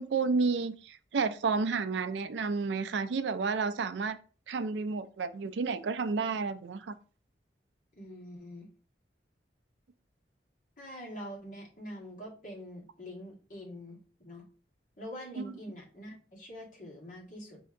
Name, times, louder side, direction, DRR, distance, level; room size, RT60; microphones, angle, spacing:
voice 1, 0.0-4.2 4.5-7.0 15.4-15.5, right 4 dB, 75° right, 12 dB, 0.4 m, -31 dB
voice 2, 7.9-8.7 10.8-14.0 14.2-14.4 15.0-17.6, equal, 45° left, -4 dB, 1.7 m, -44 dB
4.2 x 2.8 x 3.6 m, 0.38 s
head